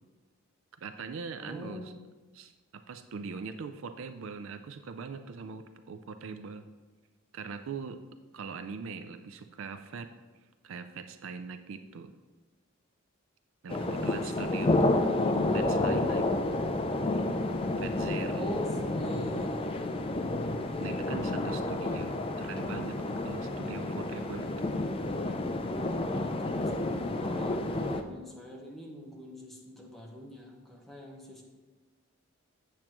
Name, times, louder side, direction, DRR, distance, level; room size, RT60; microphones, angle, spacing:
voice 1, 0.7-1.9 2.3-6.7 7.3-8.0 8.3-10.1 10.6-12.1 13.6-14.7 15.5-16.3 17.8-18.6 20.8-24.5, right 5 dB, 65° right, 9 dB, 0.4 m, -41 dB
voice 2, 1.4-1.9 13.7-14.7 18.3-21.4 26.1-26.9 27.2-31.4, equal, ahead, -2 dB, 1.1 m, -44 dB
sound 1, 13.7-28.0, left 2 dB, 25° left, 0.4 m, -30 dB
8.7 x 7.3 x 3.0 m, 1.3 s
head